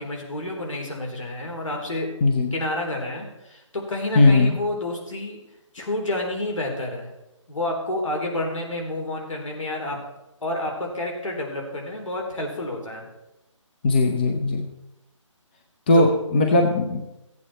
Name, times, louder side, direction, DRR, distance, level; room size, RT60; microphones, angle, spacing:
voice 1, 0.0-2.1 2.5-5.4 5.7-7.1 7.5-10.0 10.4-13.0 15.9-16.2, left 1 dB, 70° left, 0 dB, 3.9 m, -29 dB
voice 2, 2.2-2.5 4.2-4.5 13.8-14.7 15.9-17.0, left 2 dB, 20° left, 2 dB, 0.7 m, -18 dB
15.0 x 8.5 x 4.3 m, 0.93 s
figure-of-eight pair, 165°, 17 cm